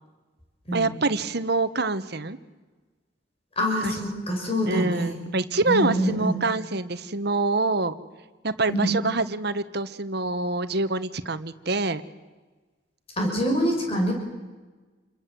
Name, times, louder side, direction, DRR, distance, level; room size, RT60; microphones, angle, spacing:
voice 1, 0.7-2.4 3.8-3.9 4.7-7.9 8.4-12.0, right 3 dB, 60° right, 11 dB, 1.4 m, -26 dB
voice 2, 3.6-5.2 5.7-6.4 8.7-8.9 13.2-14.1, equal, 30° left, 1 dB, 6.3 m, -25 dB
29.0 x 23.5 x 7.9 m, 1.3 s
head